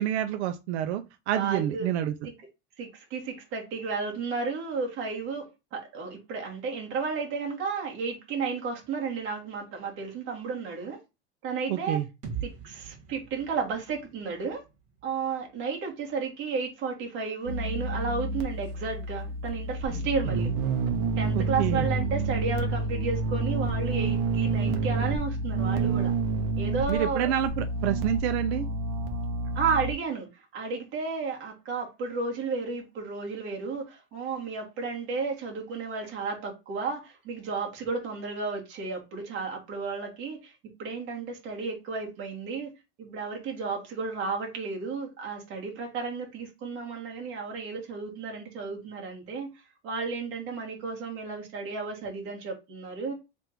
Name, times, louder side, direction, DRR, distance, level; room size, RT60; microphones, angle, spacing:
voice 1, 0.0-2.1 11.7-12.1 21.3-21.9 26.9-28.7, right 11 dB, 85° right, 0.5 m, -28 dB
voice 2, 1.3-1.9 2.8-11.0 11.4-12.0 12.4-14.6 15.0-20.5 21.2-26.1 26.6-27.3 29.5-40.5 40.8-42.7 43.0-49.5 49.8-53.1, right 5 dB, 40° right, 1.5 m, -33 dB
sound 1, 12.2-16.1, right 7 dB, 25° right, 1.3 m, -43 dB
sound 2, 17.5-29.9, right 3 dB, 60° right, 0.9 m, -29 dB
3.5 x 2.5 x 4.4 m
supercardioid pair, 165°, 32 cm